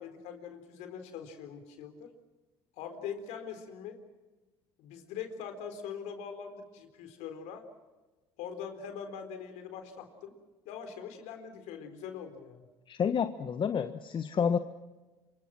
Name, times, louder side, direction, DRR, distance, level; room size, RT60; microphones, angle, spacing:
voice 1, 0.0-2.1 2.8-4.0 4.8-7.6 8.4-10.3 10.7-12.7, left 7 dB, 65° left, 7 dB, 4.0 m, -42 dB
voice 2, 12.9-14.6, left 7 dB, 40° left, 9 dB, 1.3 m, -29 dB
28.0 x 25.0 x 6.1 m, 1.2 s
hypercardioid pair, 65°, 13 cm